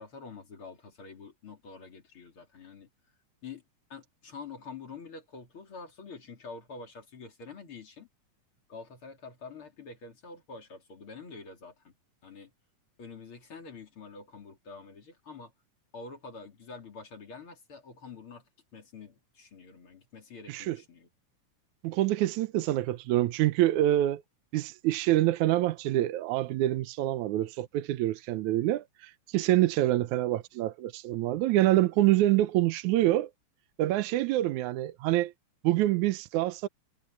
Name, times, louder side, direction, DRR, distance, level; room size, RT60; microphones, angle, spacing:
voice 1, 0.0-2.9 3.4-3.6 3.9-8.1 8.7-11.9 12.2-12.5 13.0-15.5 15.9-18.4 18.7-21.1 31.1-31.2, left 4 dB, 45° left, 3.9 m, -46 dB
voice 2, 21.8-24.2 24.5-33.3 33.8-35.3 35.6-36.7, right 15 dB, 80° right, 2.1 m, -26 dB
omnidirectional pair, 3.5 m